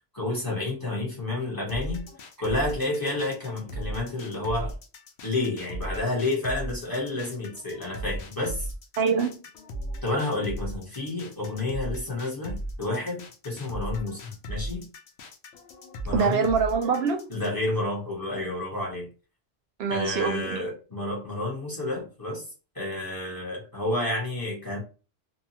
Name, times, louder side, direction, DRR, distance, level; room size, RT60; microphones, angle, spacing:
voice 1, 0.1-2.0 2.4-4.7 5.2-8.7 10.0-14.9 16.0-16.5 17.3-19.1 19.9-22.5 22.7-24.8, left 2 dB, 20° left, 1.1 m, -30 dB
sound 1, 1.7-17.7, right 1 dB, 90° left, 0.9 m, -37 dB
voice 2, 9.0-9.4 16.1-17.2 19.8-20.7, right 5 dB, 75° right, 0.8 m, -24 dB
2.7 x 2.3 x 2.8 m
omnidirectional pair, 1.1 m